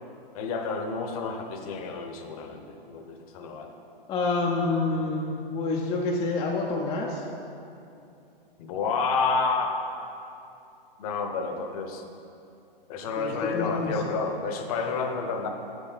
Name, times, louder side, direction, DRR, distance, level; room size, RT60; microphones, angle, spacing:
voice 1, 0.3-3.7 8.6-9.9 11.0-12.0 12.9-15.5, left 4 dB, 40° left, 5 dB, 0.8 m, -30 dB
voice 2, 4.1-7.2 13.2-14.0, left 3 dB, 15° left, -2 dB, 0.5 m, -28 dB
8.4 x 7.3 x 4.0 m, 2.7 s
hypercardioid pair, 130°, 29 cm